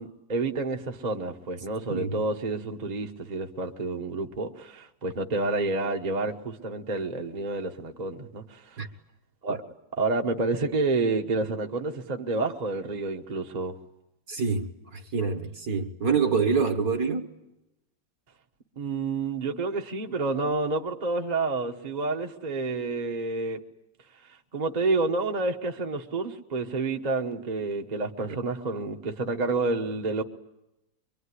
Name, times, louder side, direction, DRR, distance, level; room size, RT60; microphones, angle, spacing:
voice 1, 0.0-8.8 9.4-9.6 9.9-13.7 18.8-23.6 24.5-30.2, right 3 dB, 25° right, 1.0 m, -29 dB
voice 2, 14.3-17.3 28.2-28.4, right 5 dB, 45° right, 1.5 m, -26 dB
24.0 x 24.0 x 9.8 m
omnidirectional pair, 2.4 m